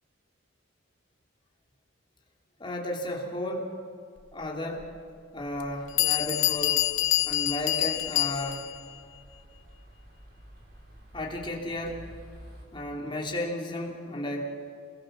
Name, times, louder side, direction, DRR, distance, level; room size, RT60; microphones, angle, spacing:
voice 1, 2.6-3.7 4.3-4.9 5.3-6.8 7.3-8.7 11.1-12.1 12.7-14.4, left 1 dB, 25° left, -1 dB, 3.2 m, -33 dB
Bell, 4.8-4.9 5.6-5.7 6.0-8.8, left 16 dB, 85° left, 0.8 m, -26 dB
sound 1, 5.3-12.7, equal, 50° right, 5.3 m, -51 dB
29.0 x 21.5 x 6.7 m, 2.4 s
head